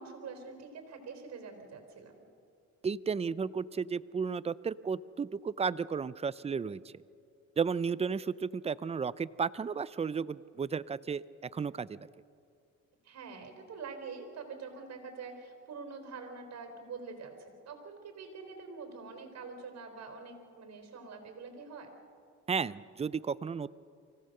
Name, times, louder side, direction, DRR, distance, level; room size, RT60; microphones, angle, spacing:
voice 1, 0.0-2.1 13.0-21.9, right 4 dB, 60° right, 5 dB, 4.1 m, -45 dB
voice 2, 2.8-6.9 7.6-12.0 22.5-23.7, right 6 dB, 20° right, 17 dB, 0.5 m, -33 dB
24.5 x 16.5 x 6.6 m, 2.4 s
cardioid pair, 90°, 30 cm